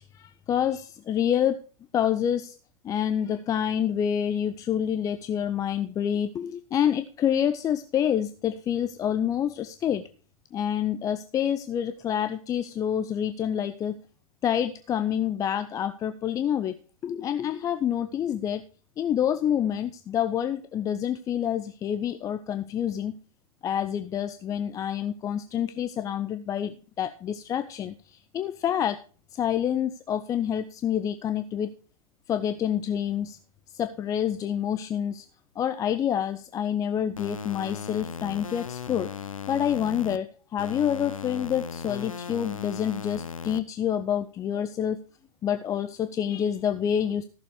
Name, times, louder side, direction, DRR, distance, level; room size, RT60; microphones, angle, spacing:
voice 1, 0.0-1.6 1.9-2.5 2.8-10.0 10.5-14.0 14.4-18.6 19.0-23.2 23.6-29.0 29.3-31.7 32.3-33.4 33.7-35.3 35.6-39.1 39.5-45.0 45.4-47.2, left 9 dB, 20° left, 9 dB, 0.6 m, -27 dB
sound 1, 37.2-40.2 40.6-43.6, left 7 dB, 75° left, 0.8 m, -37 dB
14.0 x 6.9 x 4.9 m, 0.38 s
figure-of-eight pair, 100°, 18 cm